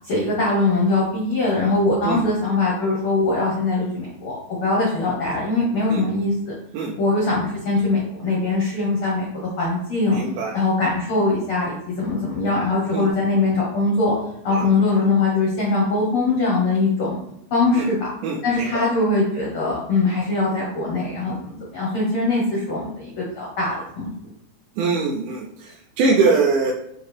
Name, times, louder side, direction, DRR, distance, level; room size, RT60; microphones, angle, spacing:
voice 1, 0.0-4.4 4.6-6.5 7.0-9.3 9.6-10.2 10.5-14.1 14.4-17.2 17.5-18.1 18.4-24.1, left 3 dB, 70° left, -4 dB, 1.3 m, -21 dB
voice 2, 10.1-10.6 12.9-13.1 14.5-14.7 17.7-17.9 18.2-18.8 24.8-26.7, right 4 dB, 85° right, -2 dB, 2.1 m, -22 dB
5.7 x 2.5 x 3.2 m, 0.78 s
omnidirectional pair, 3.6 m